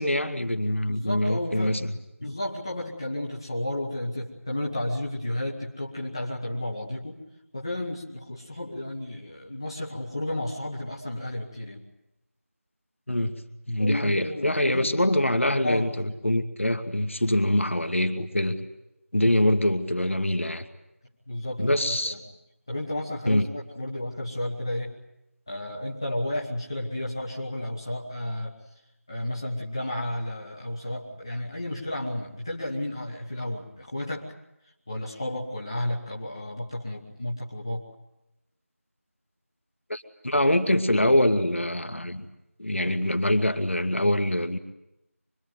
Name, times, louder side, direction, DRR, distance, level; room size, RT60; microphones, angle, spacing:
voice 1, 0.0-1.8 2.2-2.4 13.1-13.4 13.7-18.6 19.1-20.6 21.6-22.2 23.3-23.5 39.9-42.3 42.6-44.6, left 1 dB, 55° left, 8 dB, 2.2 m, -24 dB
voice 2, 0.9-1.8 2.2-7.2 7.5-11.8 13.8-14.9 15.6-15.9 21.3-22.2 22.7-25.0 25.5-28.6 29.1-34.3 34.9-37.8, left 1 dB, 20° left, -3 dB, 1.5 m, -32 dB
25.0 x 22.0 x 9.3 m, 0.88 s
figure-of-eight pair, 175°, 8 cm